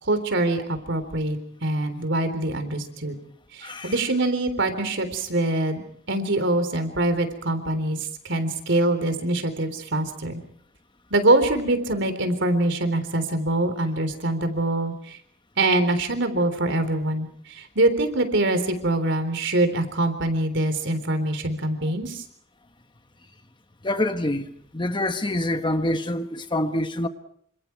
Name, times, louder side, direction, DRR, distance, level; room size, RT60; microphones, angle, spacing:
voice 1, 0.0-3.2 3.5-5.8 6.1-10.4 11.1-15.2 15.6-22.2, right 2 dB, 65° right, 3.8 m, -24 dB
voice 2, 3.6-3.9 23.8-24.5 24.7-27.1, left 1 dB, 25° left, 1.3 m, -26 dB
28.5 x 26.5 x 4.6 m
head